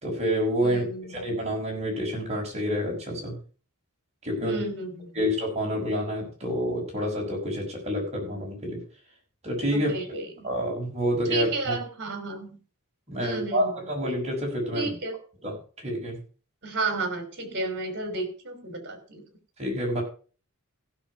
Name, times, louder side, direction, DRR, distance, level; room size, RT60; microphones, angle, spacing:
voice 1, 0.0-0.8 1.1-3.4 4.2-4.6 5.2-8.8 9.4-10.2 10.4-11.8 13.1-14.9 15.4-16.2 19.6-20.0, equal, 30° right, -1 dB, 5.6 m, -28 dB
voice 2, 0.6-1.3 4.4-5.2 9.7-10.6 11.3-12.6 13.1-13.9 14.7-15.2 16.6-19.2, right 3 dB, 55° right, 7 dB, 3.3 m, -33 dB
15.5 x 6.6 x 5.5 m, 0.38 s
head